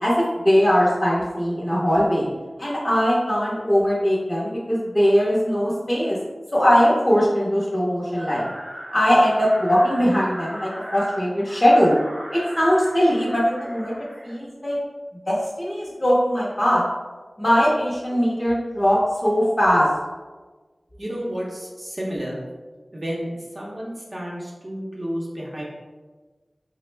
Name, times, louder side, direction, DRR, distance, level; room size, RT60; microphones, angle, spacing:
voice 1, 0.0-2.3 2.6-6.2 6.5-8.5 8.9-11.9 12.3-14.0 14.2-14.8 15.3-16.8 17.4-19.9, equal, 20° left, -7 dB, 0.7 m, -20 dB
sound 1, 8.2-14.4, equal, 70° right, 0.7 m, -38 dB
voice 2, 20.9-22.4 22.9-25.6, equal, 35° right, -4 dB, 0.8 m, -31 dB
3.4 x 2.1 x 3.2 m, 1.3 s
wide cardioid pair, 55°, 0 cm